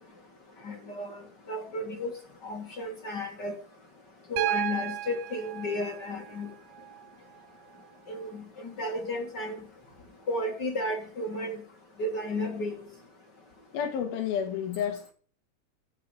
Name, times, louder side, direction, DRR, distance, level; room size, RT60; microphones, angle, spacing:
voice 1, 0.6-1.2 1.5-2.1 2.4-3.5 4.3-6.5 8.1-9.6 10.3-11.6 12.0-12.7, left 1 dB, 35° left, 1.9 m, -33 dB
Piano, 4.4-8.4 9.9-10.0, right 15 dB, 85° right, 2.5 m, -36 dB
voice 2, 13.7-15.1, left 8 dB, 80° left, 3.3 m, -30 dB
13.0 x 7.7 x 5.7 m
omnidirectional pair, 4.2 m